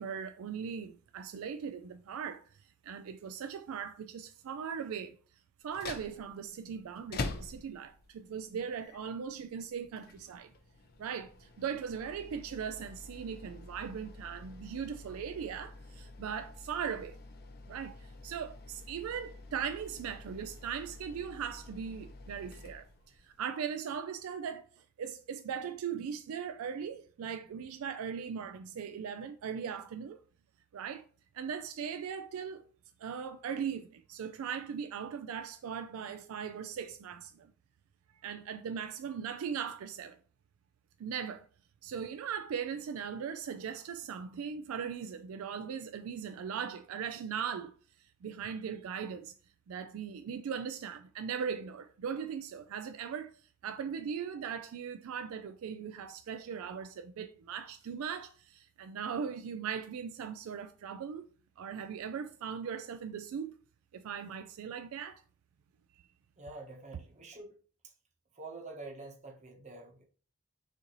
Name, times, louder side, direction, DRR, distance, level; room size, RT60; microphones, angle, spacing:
voice 1, 0.0-2.4 2.8-5.2 5.6-10.5 11.0-17.2 17.7-22.9 23.2-24.7 25.0-30.2 30.7-31.0 31.3-32.7 33.0-37.5 38.2-40.2 41.0-41.5 41.8-47.7 48.2-49.3 49.7-53.3 53.6-61.3 61.6-63.5 63.9-65.2 65.9-66.0, right 7 dB, 70° right, 0.3 m, -39 dB
sound 1, 5.6-23.4, left 3 dB, 45° left, 0.5 m, -47 dB
voice 2, 66.4-67.6 68.3-70.1, right 2 dB, 35° right, 0.9 m, -47 dB
6.4 x 2.6 x 3.0 m
head